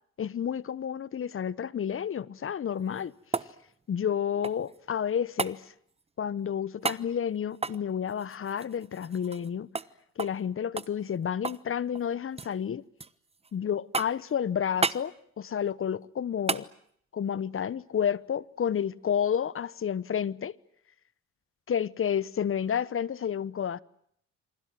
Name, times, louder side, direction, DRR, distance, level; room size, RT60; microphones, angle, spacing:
voice 1, 0.2-3.1 3.9-5.7 6.2-9.7 10.2-12.8 13.5-16.7 17.1-20.5 21.7-23.8, left 8 dB, 45° left, 1.1 m, -30 dB
sound 1, 2.7-4.8 5.4-5.6 6.8-7.1 7.5-9.5 9.7-9.9 10.2-10.4 10.8-11.7 11.9-12.5 13.0-13.5 13.9-14.3 14.8-15.1 16.5-16.7 19.0-19.1, right 4 dB, 20° right, 1.1 m, -33 dB
28.5 x 26.0 x 7.7 m
cardioid pair, 90°, 30 cm